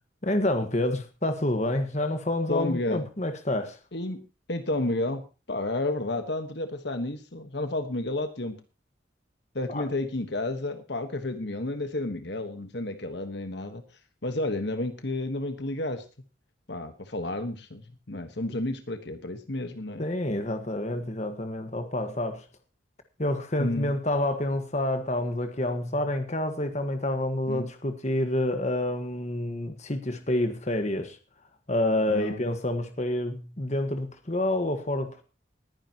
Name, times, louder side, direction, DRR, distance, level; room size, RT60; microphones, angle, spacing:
voice 1, 0.2-3.8 9.7-9.8 20.0-22.5 23.2-31.2 31.7-35.2, left 1 dB, 35° left, 1.5 m, -28 dB
voice 2, 2.5-3.0 3.9-8.6 9.5-13.8 14.2-16.0 16.7-20.0 23.6-23.9 27.5-27.7 32.1-32.4, left 2 dB, 60° left, 1.4 m, -31 dB
20.5 x 10.0 x 3.0 m
head